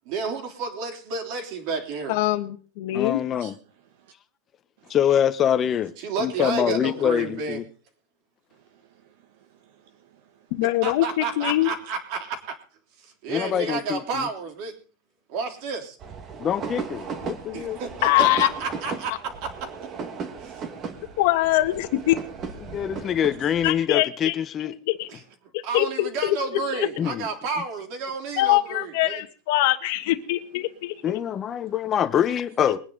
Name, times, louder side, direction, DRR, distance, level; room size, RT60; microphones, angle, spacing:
voice 1, 0.1-2.2 6.0-7.6 10.8-12.4 13.0-14.7 15.3-16.0 17.5-19.1 20.4-20.6 25.1-25.2 25.6-29.2, right 4 dB, 50° right, 3.5 m, -31 dB
voice 2, 2.1-3.2 10.5-11.7 18.0-18.5 21.2-22.1 23.6-24.3 24.6-25.1 25.5-26.4 26.7-26.9 28.4-31.2, left 16 dB, 60° left, 1.3 m, -23 dB
voice 3, 2.9-3.5 4.9-5.9 6.2-7.6 13.3-14.3 16.4-17.8 22.6-24.7 27.0-27.3 31.0-32.8, left 9 dB, 25° left, 1.0 m, -24 dB
voice 4, 8.7-9.3 9.6-10.2 20.4-21.2 31.6-31.7, right 8 dB, 65° right, 1.4 m, -55 dB
sound 1, 16.0-23.7, right 5 dB, 30° right, 1.8 m, -36 dB
22.5 x 9.7 x 4.0 m
supercardioid pair, 160°, 0 cm